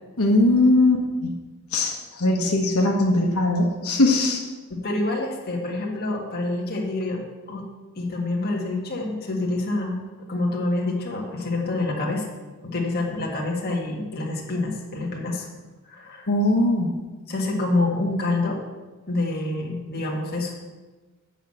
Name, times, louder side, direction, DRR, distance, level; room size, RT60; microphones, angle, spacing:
voice 1, 0.2-1.3 1.7-4.4 16.3-16.9, left 2 dB, 90° left, -1 dB, 1.3 m, -20 dB
voice 2, 4.7-7.2 7.5-7.6 7.9-12.3 12.6-15.5 15.9-16.3 17.3-18.6 19.1-20.5, left 2 dB, 45° left, -1 dB, 1.8 m, -27 dB
8.2 x 5.7 x 7.8 m, 1.2 s
head